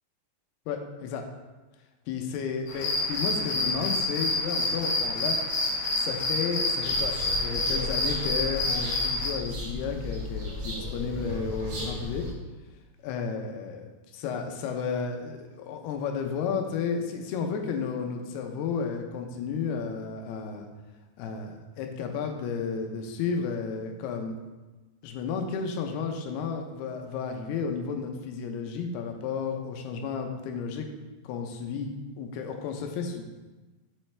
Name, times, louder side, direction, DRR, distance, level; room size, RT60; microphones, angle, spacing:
voice 1, 0.7-1.3 2.1-5.4 6.0-12.3 13.0-13.9 14.1-20.7 21.2-24.4 25.0-30.9 31.2-33.2, left 5 dB, 90° left, 4 dB, 2.8 m, -32 dB
sound 1, 2.7-9.3, left 2 dB, 55° left, 1.9 m, -28 dB
sound 2, 6.8-12.3, left 2 dB, 50° right, 1.7 m, -36 dB
7.2 x 6.5 x 3.3 m, 1.2 s
omnidirectional pair, 4.5 m